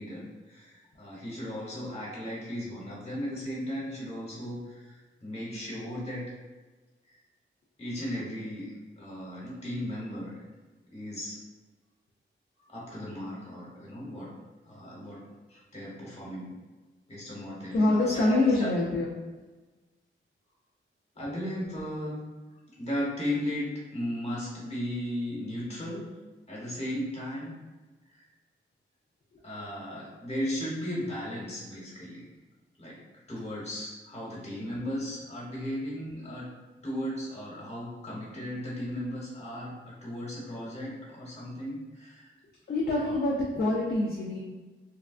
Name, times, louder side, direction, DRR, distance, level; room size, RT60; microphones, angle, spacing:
voice 1, 0.0-6.3 7.8-10.4 10.9-11.4 12.6-14.3 14.6-15.2 15.5-16.5 17.1-18.7 21.2-22.1 22.8-26.1 26.5-27.5 28.1-28.3 29.4-32.2 32.8-33.0 33.3-36.5 36.8-42.3 43.0-43.2, equal, 30° left, -6 dB, 1.2 m, -36 dB
voice 2, 17.7-19.1 42.7-44.4, left 2 dB, 50° left, -4 dB, 0.5 m, -25 dB
3.4 x 2.2 x 2.4 m, 1.2 s
wide cardioid pair, 120°, 21 cm